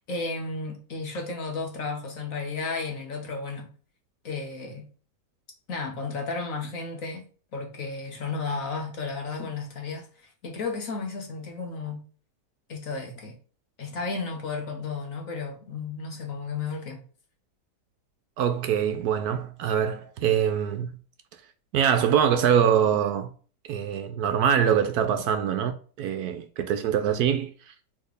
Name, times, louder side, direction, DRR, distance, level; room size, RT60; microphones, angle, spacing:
voice 1, 0.0-3.7 4.2-4.9 5.7-7.2 7.5-12.0 12.7-13.4 13.8-17.0, left 4 dB, 55° left, 1.5 m, -33 dB
voice 2, 18.4-21.0 21.7-23.3 23.7-27.7, right 8 dB, 70° right, 1.1 m, -24 dB
4.3 x 3.7 x 3.3 m
omnidirectional pair, 1.8 m